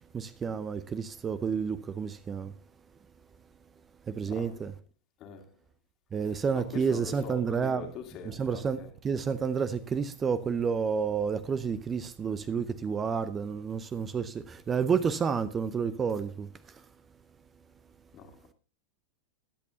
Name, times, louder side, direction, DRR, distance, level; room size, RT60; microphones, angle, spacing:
voice 1, 0.1-2.5 4.1-4.7 6.1-7.8 8.4-8.8 9.0-16.5, right 6 dB, 20° right, 0.7 m, -30 dB
voice 2, 4.3-4.7 5.2-5.6 6.2-8.9 18.1-18.5, left 6 dB, 35° left, 2.2 m, -44 dB
22.0 x 8.4 x 2.8 m
figure-of-eight pair, 90°, 0 cm